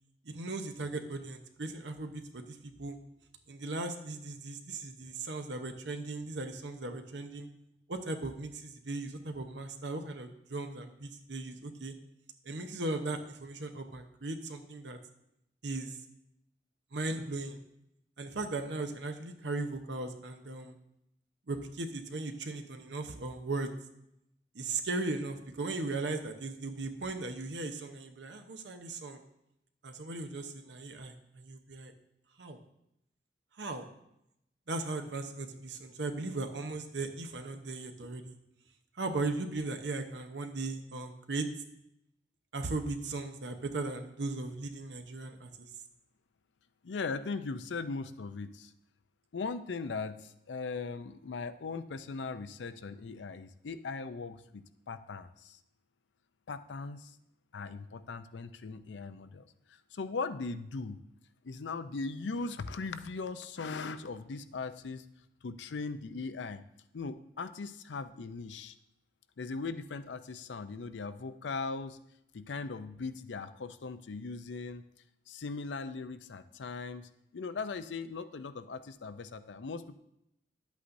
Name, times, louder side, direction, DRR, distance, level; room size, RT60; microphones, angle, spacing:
voice 1, 0.2-3.0 3.5-7.5 7.9-11.9 12.5-15.0 15.6-16.0 16.9-17.6 18.2-20.8 21.5-23.7 24.5-29.2 29.8-31.9 32.4-32.6 33.6-33.9 34.7-38.3 39.0-41.5 42.5-45.7, right 2 dB, 80° right, 6 dB, 0.9 m, -37 dB
voice 2, 46.8-48.7 49.3-55.6 56.5-57.2 57.5-61.0 61.4-65.0 65.4-66.6 66.9-68.7 69.4-72.0 72.3-74.8 75.3-80.0, left 4 dB, 90° left, 11 dB, 0.5 m, -39 dB
11.0 x 8.2 x 2.6 m, 0.81 s
head